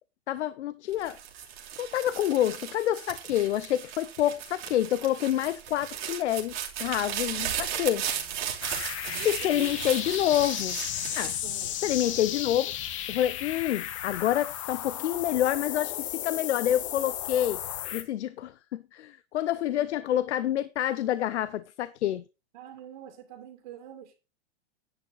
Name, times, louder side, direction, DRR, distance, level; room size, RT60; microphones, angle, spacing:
voice 1, 0.3-1.2 1.8-8.1 9.2-10.8 11.1-11.4 11.8-12.7 13.1-17.6 17.9-22.2, left 12 dB, 75° left, 0.7 m, -28 dB
sound 1, 0.9-12.3 12.8-13.4, right 9 dB, 60° right, 2.9 m, -36 dB
voice 2, 7.1-7.5 8.1-8.2 9.1-9.9 11.4-11.8 12.0-12.2 22.5-24.2, right 11 dB, 45° right, 2.5 m, -45 dB
sound 2, 8.6-18.0, left 12 dB, 30° left, 0.7 m, -34 dB
10.5 x 8.5 x 3.9 m
supercardioid pair, 180°, 34 cm